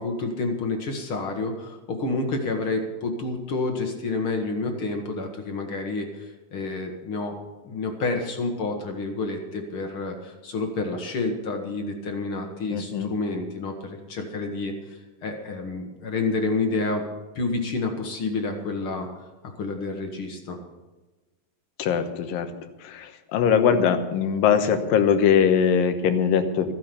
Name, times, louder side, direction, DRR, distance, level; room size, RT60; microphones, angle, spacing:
voice 1, 0.0-7.3 7.6-17.0 17.3-19.1 19.4-20.6, left 3 dB, 55° left, 4 dB, 1.6 m, -29 dB
voice 2, 12.7-13.1 21.8-22.5 22.8-26.7, left 7 dB, 80° left, 8 dB, 2.7 m, -21 dB
14.5 x 9.4 x 6.9 m, 1.1 s
omnidirectional pair, 4.0 m